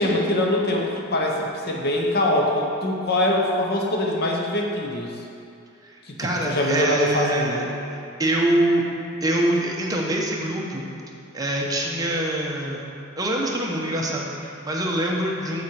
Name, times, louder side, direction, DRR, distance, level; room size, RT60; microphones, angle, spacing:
voice 1, 0.0-5.2 6.1-6.2 6.4-7.7, left 1 dB, 50° left, -1 dB, 0.9 m, -23 dB
voice 2, 5.8-8.8 9.2-10.9 11.3-12.8 13.2-15.6, right 1 dB, 20° right, -2 dB, 0.8 m, -25 dB
7.4 x 4.3 x 4.7 m, 2.6 s
head